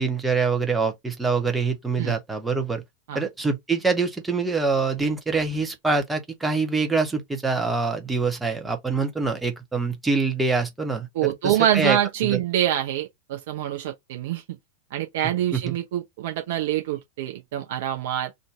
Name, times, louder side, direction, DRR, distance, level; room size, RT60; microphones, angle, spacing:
voice 1, 0.0-2.8 3.1-11.3 11.7-12.0 12.3-12.4 15.5-15.7, right 4 dB, 10° right, 0.7 m, -25 dB
voice 2, 11.1-14.6 14.9-18.3, right 11 dB, 55° right, 0.5 m, -25 dB
2.6 x 2.2 x 3.5 m
figure-of-eight pair, 90°, 0 cm